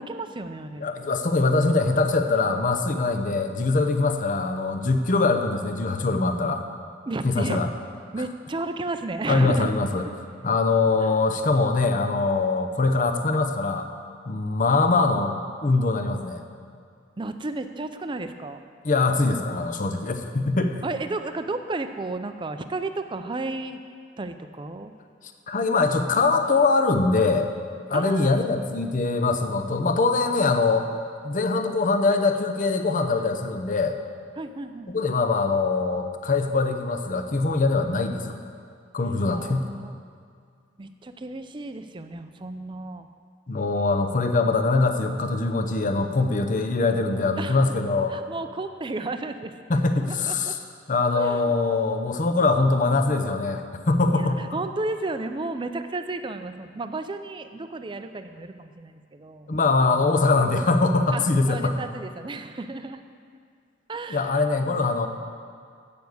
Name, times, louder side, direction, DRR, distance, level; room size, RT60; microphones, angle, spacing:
voice 1, 0.0-0.9 7.1-7.6 8.1-9.7 11.0-11.1 17.2-18.6 20.8-23.8 24.2-24.9 27.9-28.5 34.4-34.9 39.2-40.0 40.8-43.1 47.4-47.7 48.1-50.6 51.1-51.6 54.0-59.5 61.1-63.0 63.9-64.4, right 2 dB, 25° right, 8 dB, 0.5 m, -33 dB
voice 2, 0.8-6.6 7.2-7.7 9.3-10.0 10.4-13.9 14.3-15.4 15.6-16.4 18.8-20.8 25.5-27.5 27.9-30.9 31.2-34.0 34.9-38.4 38.9-39.7 43.5-48.1 49.7-50.6 50.9-54.4 59.5-61.8 64.1-65.1, left 3 dB, 45° left, 6 dB, 0.7 m, -23 dB
8.4 x 7.0 x 7.8 m, 2.2 s
head